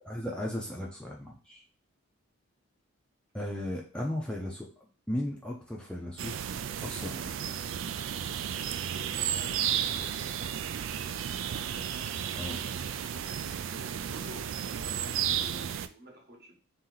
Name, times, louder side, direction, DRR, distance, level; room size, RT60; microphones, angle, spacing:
voice 1, 0.0-1.6 3.3-4.7 5.1-7.5 12.3-12.6, left 1 dB, 5° left, -2 dB, 0.5 m, -36 dB
sound 1, 6.2-15.9, right 9 dB, 65° right, 0.3 m, -33 dB
voice 2, 8.9-10.3 11.4-12.1 12.5-16.5, right 1 dB, 50° right, 0 dB, 1.1 m, -51 dB
3.7 x 2.9 x 3.9 m, 0.37 s
head